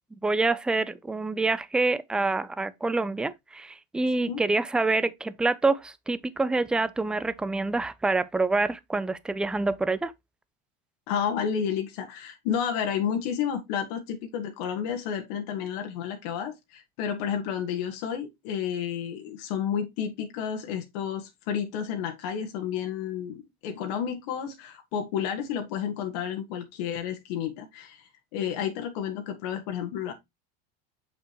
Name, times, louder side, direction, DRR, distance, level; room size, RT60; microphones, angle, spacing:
voice 1, 0.2-10.1, right 3 dB, 5° right, 0.4 m, -26 dB
voice 2, 11.1-30.1, left 8 dB, 75° left, 1.5 m, -31 dB
6.9 x 5.5 x 2.9 m
supercardioid pair, 135°, 21 cm